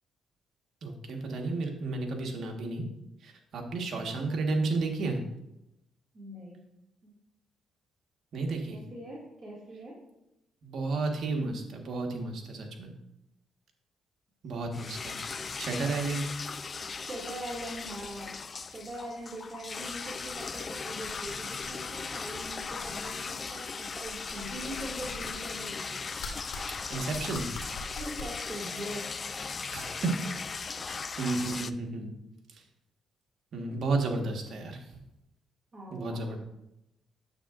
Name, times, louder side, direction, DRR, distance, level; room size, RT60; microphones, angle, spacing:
voice 1, 0.8-2.8 3.2-5.2 8.3-8.8 10.6-12.9 14.4-16.3 26.9-27.5 29.7-30.1 30.8-32.1 33.5-34.8 35.9-36.4, right 3 dB, 60° right, 2 dB, 1.4 m, -32 dB
voice 2, 6.1-6.6 7.0-7.1 8.7-10.0 14.5-14.6 17.0-18.4 18.7-26.1 28.0-29.2 35.7-36.4, right 1 dB, 30° right, -6 dB, 2.2 m, -42 dB
sound 1, 14.7-31.7, left 5 dB, 40° left, 0.3 m, -38 dB
sound 2, 17.7-18.2 18.6-18.7 19.3-19.4 19.7-20.4 21.1-21.3 21.6-21.7 22.4-23.1 24.0-25.4 26.2-28.2, left 3 dB, 85° left, 1.8 m, -44 dB
9.0 x 7.5 x 2.5 m, 0.88 s
cardioid pair, 90°, 0 cm